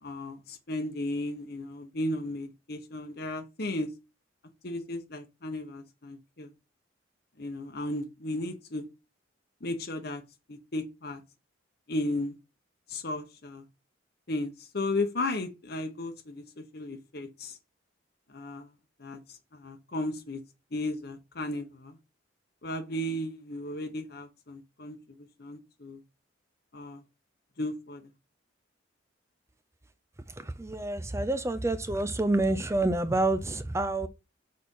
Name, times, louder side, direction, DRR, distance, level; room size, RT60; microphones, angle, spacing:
voice 1, 0.0-3.9 4.6-6.5 7.4-8.9 9.6-10.2 10.5-11.2 11.9-12.3 12.9-13.6 14.3-17.6 18.3-18.7 19.0-20.4 20.7-22.0 22.6-26.0 26.7-27.0 27.6-28.1, left 1 dB, 55° left, 0.9 m, -35 dB
voice 2, 30.4-34.1, right 2 dB, 15° right, 0.4 m, -28 dB
6.4 x 4.2 x 5.4 m
head